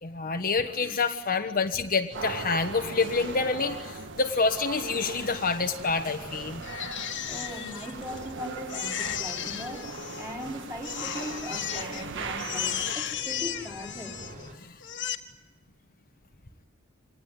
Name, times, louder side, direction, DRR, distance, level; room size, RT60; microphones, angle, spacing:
voice 1, 0.0-6.6 14.6-14.8, left 4 dB, 45° left, 6 dB, 1.3 m, -27 dB
sound 1, 2.1-14.5, right 1 dB, 45° right, 4.6 m, -48 dB
sound 2, 2.1-12.9, right 4 dB, 60° right, 1.6 m, -39 dB
Crying sobbing, 6.6-8.3 8.7-10.5 10.8-12.0 12.4-14.5 14.8-15.2, left 10 dB, 60° left, 1.8 m, -34 dB
voice 2, 7.3-14.2, equal, 15° right, -1 dB, 4.8 m, -39 dB
26.0 x 19.5 x 9.6 m, 1.2 s
head